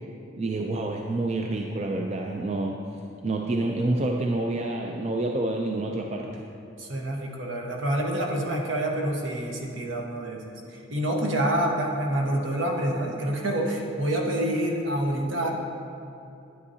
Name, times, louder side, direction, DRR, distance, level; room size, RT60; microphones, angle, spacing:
voice 1, 0.4-2.8 3.2-6.4, right 2 dB, 30° right, 1 dB, 0.4 m, -28 dB
voice 2, 6.8-15.5, right 1 dB, 65° right, 0 dB, 1.1 m, -27 dB
9.4 x 9.3 x 2.7 m, 2.8 s
head